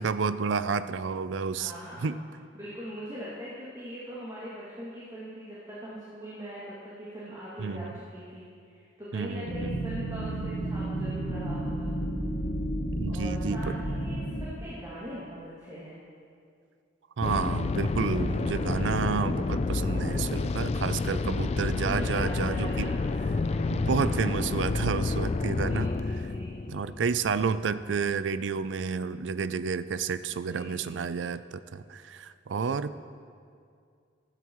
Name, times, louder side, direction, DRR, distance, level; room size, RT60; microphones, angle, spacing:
voice 1, 0.0-1.7 2.0-2.2 7.6-8.0 9.1-9.8 13.0-13.7 17.2-22.9 23.7-25.9 26.7-33.0, right 5 dB, 90° right, 14 dB, 0.4 m, -30 dB
voice 2, 1.5-2.1 2.5-11.9 13.1-16.0 21.8-23.0 23.5-24.3 25.6-26.5 30.4-30.9, equal, 20° right, -9 dB, 2.3 m, -41 dB
sound 1, 9.4-14.4, right 1 dB, 70° left, 1.6 m, -32 dB
sound 2, 17.2-28.0, left 3 dB, 35° left, 0.3 m, -29 dB
15.5 x 13.0 x 3.1 m, 2.3 s
head